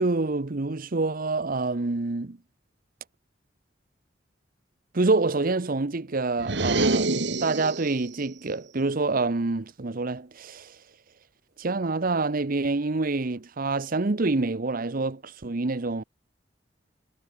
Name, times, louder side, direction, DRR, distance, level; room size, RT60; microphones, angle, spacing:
voice 1, 0.0-2.4 4.9-7.1 7.4-10.8 11.6-16.0, right 3 dB, 50° right, 0.9 m, -27 dB
sound 1, 6.4-8.0, right 2 dB, 65° right, 2.1 m, -26 dB
head